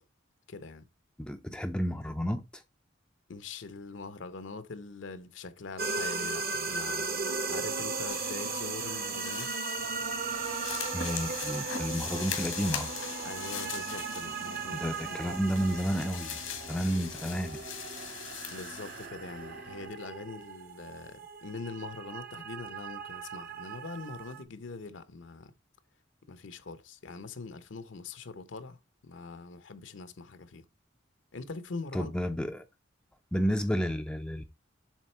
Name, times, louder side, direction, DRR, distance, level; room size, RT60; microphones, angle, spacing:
voice 1, 0.5-0.9 3.3-9.5 13.2-15.0 18.5-25.5 26.3-30.6 31.3-32.1, left 4 dB, 70° left, 0.7 m, -43 dB
voice 2, 1.2-2.6 10.9-13.0 14.7-16.4 16.7-17.6 31.9-32.6 33.3-34.4, equal, 5° left, 0.4 m, -31 dB
sound 1, 5.8-24.4, right 4 dB, 50° right, 1.0 m, -37 dB
sound 2, 8.1-19.1, left 8 dB, 90° left, 1.5 m, -41 dB
sound 3, 9.7-19.9, right 1 dB, 65° right, 2.8 m, -50 dB
7.4 x 3.7 x 4.3 m
head